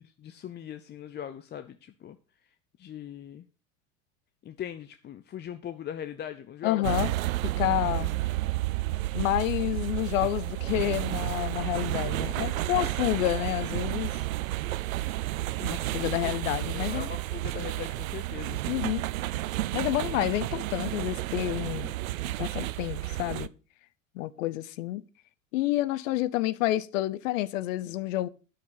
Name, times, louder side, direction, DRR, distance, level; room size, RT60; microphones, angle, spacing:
voice 1, 0.2-2.2 2.8-3.5 4.4-6.9 16.2-16.4 16.7-18.6, left 10 dB, 25° left, 0.6 m, -40 dB
voice 2, 6.6-7.1 7.4-8.1 9.1-14.1 15.6-17.1 18.7-19.0 19.7-21.9 22.4-23.5 24.1-25.0 25.5-28.3, left 15 dB, 70° left, 0.8 m, -29 dB
sound 1, 6.8-23.5, right 17 dB, 80° right, 0.5 m, -31 dB
9.6 x 6.3 x 5.7 m
hypercardioid pair, 90°, 40 cm